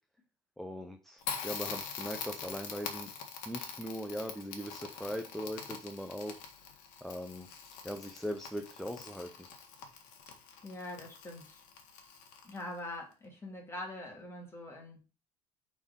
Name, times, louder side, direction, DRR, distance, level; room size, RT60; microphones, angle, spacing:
voice 1, 0.6-3.1 3.5-6.4 7.0-7.5 7.8-9.3, equal, ahead, 5 dB, 0.7 m, -40 dB
Crackle, 1.2-12.8, left 6 dB, 80° left, 1.7 m, -44 dB
voice 2, 10.6-11.6 12.4-15.0, left 1 dB, 20° left, 0 dB, 2.8 m, -43 dB
5.6 x 4.3 x 5.2 m, 0.33 s
cardioid pair, 120°, 14 cm